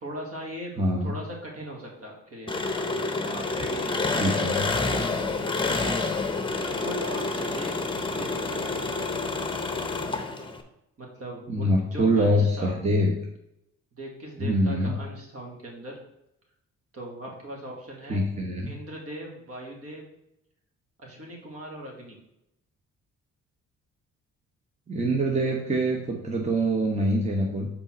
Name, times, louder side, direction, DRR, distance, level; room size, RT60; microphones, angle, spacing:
voice 1, 0.0-0.7 1.0-2.5 3.3-4.4 6.5-9.2 11.0-12.7 14.0-15.9 16.9-18.2 18.7-20.0 21.0-22.2, right 1 dB, 50° right, -1 dB, 2.4 m, -39 dB
voice 2, 0.8-1.1 4.2-4.7 11.5-13.1 14.4-15.0 18.1-18.7 24.9-27.7, equal, 20° right, 0 dB, 1.1 m, -24 dB
Engine, 2.5-10.6, left 3 dB, 15° left, 0.9 m, -28 dB
5.3 x 4.3 x 6.1 m, 0.83 s
cardioid pair, 90°, 30 cm